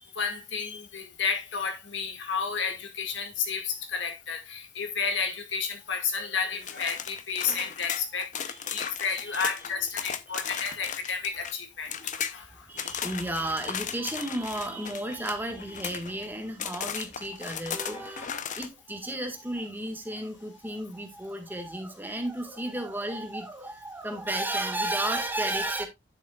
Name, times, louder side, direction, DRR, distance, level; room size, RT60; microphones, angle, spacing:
voice 1, 0.2-12.5, left 5 dB, 70° left, 2.0 m, -31 dB
sound 1, 6.6-11.5 11.8-12.4 12.8-16.2 16.6-18.7, left 8 dB, 40° left, 0.7 m, -36 dB
voice 2, 8.4-8.8 9.3-9.5 10.3-10.4 12.7-25.9, right 1 dB, 10° right, 1.7 m, -33 dB
11.0 x 6.4 x 2.4 m
head